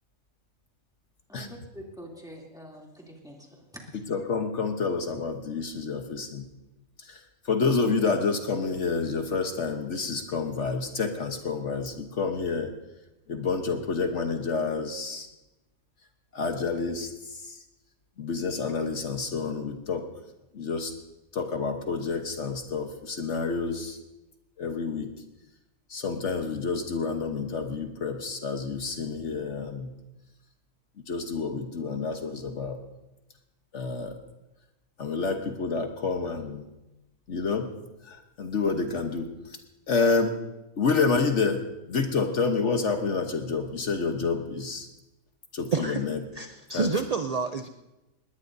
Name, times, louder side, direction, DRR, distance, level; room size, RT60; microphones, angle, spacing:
voice 1, 1.3-3.8, equal, 5° right, -2 dB, 2.8 m, -45 dB
voice 2, 4.1-6.4 7.0-12.7 13.3-15.3 16.3-17.6 18.2-20.0 20.5-20.9 21.3-24.0 24.6-25.1 25.9-29.9 31.1-32.8 33.7-34.2 35.0-36.6 37.3-37.7 38.0-39.6 39.9-40.4 40.8-44.9 45.5-46.2 46.7-46.9, left 4 dB, 60° left, 5 dB, 1.3 m, -29 dB
voice 3, 45.7-46.0 46.3-47.7, right 4 dB, 55° right, 7 dB, 0.4 m, -28 dB
20.5 x 19.0 x 2.7 m, 0.98 s
omnidirectional pair, 1.4 m